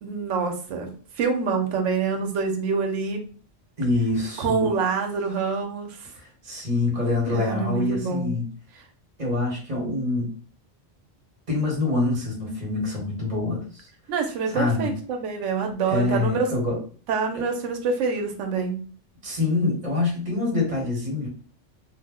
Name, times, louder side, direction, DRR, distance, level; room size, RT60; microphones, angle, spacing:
voice 1, 0.0-3.3 4.4-6.1 7.3-8.4 14.1-16.5 17.1-18.8, right 5 dB, 85° right, 4 dB, 0.9 m, -26 dB
voice 2, 3.8-4.7 6.2-8.5 9.2-10.3 11.5-13.6 14.5-14.9 15.9-16.8 17.3-17.4 19.2-21.3, left 2 dB, 35° right, -2 dB, 1.1 m, -25 dB
2.4 x 2.0 x 3.5 m, 0.40 s
omnidirectional pair, 1.2 m